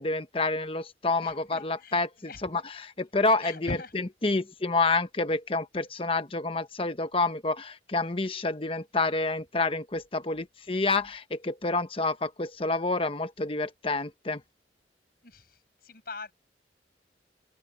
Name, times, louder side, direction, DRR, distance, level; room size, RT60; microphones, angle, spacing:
voice 1, 0.0-14.4, left 3 dB, 30° left, 1.0 m, -28 dB
voice 2, 1.2-2.4 3.4-3.9 15.2-16.3, left 2 dB, 55° left, 6.2 m, -41 dB
open air
head